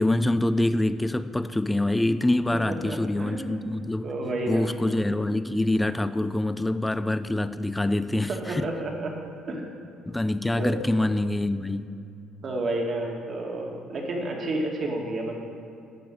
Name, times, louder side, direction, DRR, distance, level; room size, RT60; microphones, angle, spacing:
voice 1, 0.0-4.1 4.5-8.7 10.1-11.9, left 1 dB, 10° left, 0.5 m, -25 dB
voice 2, 2.7-3.7 4.0-4.7 8.3-9.1 9.5-9.7 10.6-10.8 12.4-15.4, right 1 dB, 50° right, 2.1 m, -30 dB
12.0 x 5.4 x 7.8 m
hypercardioid pair, 60°, 0 cm